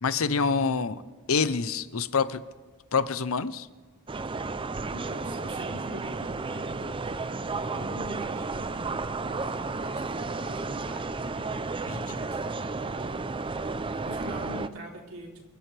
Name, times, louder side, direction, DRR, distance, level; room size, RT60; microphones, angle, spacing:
voice 1, 0.0-1.0 1.3-2.4 2.9-3.7 11.9-12.2, left 5 dB, 70° left, 14 dB, 0.8 m, -26 dB
sound 1, 4.1-14.7, right 3 dB, 25° right, 0.5 m, -33 dB
voice 2, 4.9-7.0 7.5-11.6 12.1-13.6 14.0-15.5, right 1 dB, 70° right, -1 dB, 3.6 m, -43 dB
26.0 x 13.5 x 3.4 m, 1.4 s
head